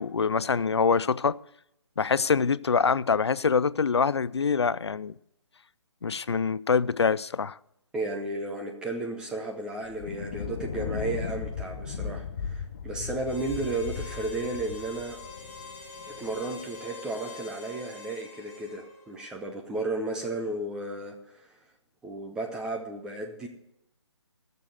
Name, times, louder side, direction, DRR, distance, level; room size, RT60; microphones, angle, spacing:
voice 1, 0.0-1.4 2.0-5.1 6.0-7.6, left 5 dB, 65° left, 0.5 m, -25 dB
voice 2, 7.9-15.2 16.1-21.5 22.0-23.5, right 2 dB, 5° right, 0.7 m, -34 dB
Thunder, 9.8-16.5, left 6 dB, 35° left, 0.9 m, -36 dB
Harmonica, 13.2-19.2, left 4 dB, 15° left, 5.6 m, -45 dB
16.5 x 6.8 x 6.5 m
figure-of-eight pair, 140°, 15 cm